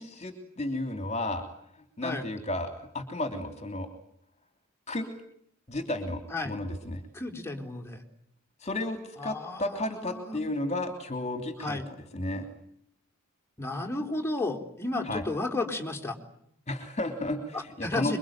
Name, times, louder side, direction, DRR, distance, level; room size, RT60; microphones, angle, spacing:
voice 1, 0.0-1.5 1.7-3.9 4.9-5.1 5.7-7.0 8.6-11.8 12.1-12.5 15.0-15.2 16.7-18.2, left 1 dB, 30° left, 6 dB, 3.1 m, -33 dB
voice 2, 7.1-8.0 9.2-10.4 11.6-11.9 13.6-16.2 17.5-18.2, left 2 dB, 10° left, 3 dB, 4.1 m, -33 dB
26.5 x 23.5 x 9.1 m, 0.70 s
head